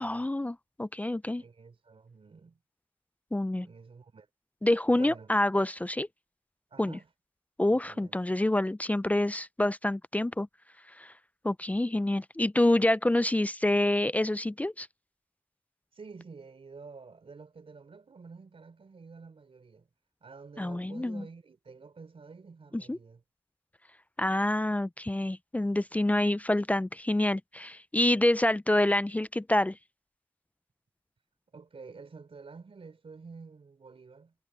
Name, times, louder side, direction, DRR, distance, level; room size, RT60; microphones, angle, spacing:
voice 1, 0.0-1.4 3.3-3.7 4.6-6.1 6.8-7.0 7.6-10.5 11.0-11.1 11.4-14.9 20.6-21.3 22.7-23.0 24.2-29.8, left 1 dB, 15° left, 0.4 m, -27 dB
voice 2, 1.4-2.6 3.6-4.3 4.9-5.3 6.7-7.1 7.7-8.2 15.9-19.9 20.2-23.2 31.5-34.3, right 4 dB, 90° right, 4.0 m, -49 dB
wide cardioid pair, 95°, 9 cm